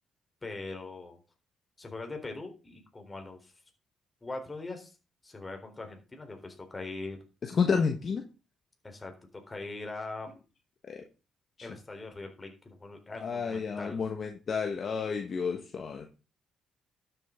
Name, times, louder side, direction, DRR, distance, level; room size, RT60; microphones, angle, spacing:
voice 1, 0.4-1.2 1.8-3.5 4.2-5.0 5.2-7.2 8.8-10.3 11.6-14.0, left 3 dB, 20° left, 4 dB, 3.8 m, -41 dB
voice 2, 7.4-8.2 10.9-11.0 13.2-16.1, left 5 dB, 50° left, 4 dB, 1.5 m, -30 dB
12.0 x 7.8 x 3.8 m, 0.32 s
cardioid pair, 90°, 0 cm